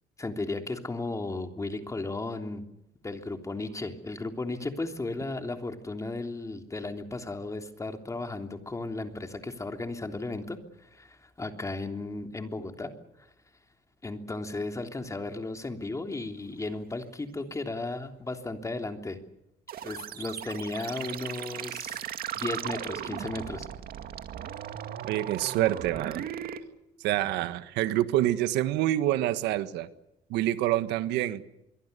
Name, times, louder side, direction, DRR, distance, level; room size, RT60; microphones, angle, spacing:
voice 1, 0.2-2.6 3.0-12.9 14.0-19.2 19.8-22.0 22.3-23.7, left 2 dB, 20° left, 5 dB, 3.2 m, -35 dB
sound 1, 19.7-26.6, right 10 dB, 60° right, 2.1 m, -37 dB
voice 2, 25.1-26.2 27.0-29.9 30.3-31.4, right 14 dB, 90° right, 12 dB, 1.5 m, -27 dB
25.5 x 23.5 x 6.8 m, 0.86 s
cardioid pair, 110°, 17 cm